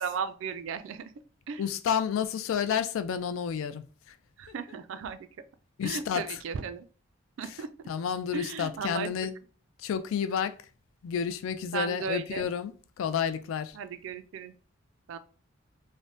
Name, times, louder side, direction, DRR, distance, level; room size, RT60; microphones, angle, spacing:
voice 1, 0.0-1.0 1.5-1.6 4.4-5.2 5.8-6.9 7.4-7.7 8.3-9.1 11.7-12.4 13.8-14.5 15.1-15.2, right 6 dB, 70° right, 0.3 m, -35 dB
voice 2, 1.6-4.2 5.8-6.4 7.4-9.3 9.8-10.6 11.0-13.8, left 7 dB, 75° left, 0.3 m, -31 dB
3.2 x 2.1 x 2.6 m
head